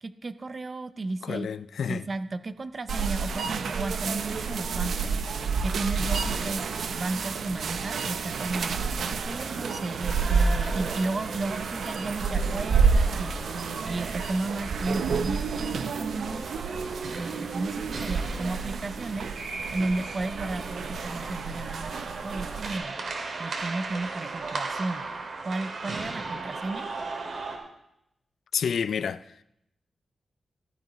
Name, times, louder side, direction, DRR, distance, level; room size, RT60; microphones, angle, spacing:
voice 1, 0.0-1.5 1.9-5.1 5.6-8.8 9.2-13.4 13.9-16.5 17.0-19.3 19.7-23.0 23.4-25.0 25.4-26.9, right 2 dB, 35° right, 0.6 m, -34 dB
voice 2, 1.2-2.1 28.5-29.3, left 7 dB, 80° left, 0.4 m, -29 dB
sound 1, 2.9-22.8, right 5 dB, 90° right, 0.7 m, -29 dB
sound 2, 9.2-27.6, right 3 dB, 65° right, 2.3 m, -38 dB
15.5 x 12.5 x 3.1 m
wide cardioid pair, 155°, 0 cm